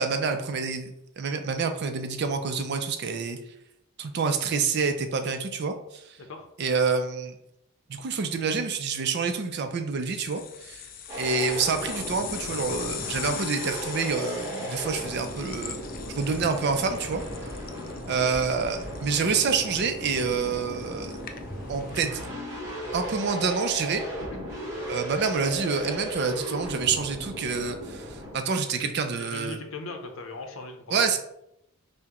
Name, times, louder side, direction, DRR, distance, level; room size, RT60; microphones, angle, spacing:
voice 1, 0.0-3.4 4.0-6.2 6.6-7.4 7.9-10.8 11.2-15.8 16.1-17.2 18.1-21.1 21.7-22.2 22.9-24.0 24.9-29.6 30.9-31.2, right 5 dB, 50° right, 7 dB, 0.4 m, -27 dB
sound 1, 10.1-22.0, left 9 dB, 40° left, 0.3 m, -41 dB
sound 2, 11.1-28.4, equal, 15° right, 1.1 m, -36 dB
voice 2, 29.2-31.1, left 3 dB, 65° left, 4 dB, 0.7 m, -39 dB
5.7 x 2.1 x 2.9 m, 0.77 s
head